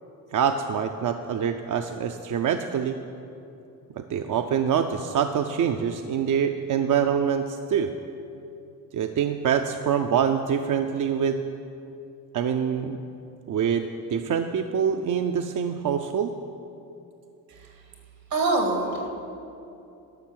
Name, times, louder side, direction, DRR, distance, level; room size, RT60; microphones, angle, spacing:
voice 1, 0.3-3.0 4.0-7.9 8.9-11.4 12.3-13.0 13.5-16.3, right 8 dB, 60° right, 6 dB, 0.5 m, -25 dB
voice 2, 18.3-19.1, right 2 dB, 85° right, 3 dB, 2.0 m, -24 dB
12.0 x 6.1 x 7.5 m, 2.8 s
cardioid pair, 90°, 35 cm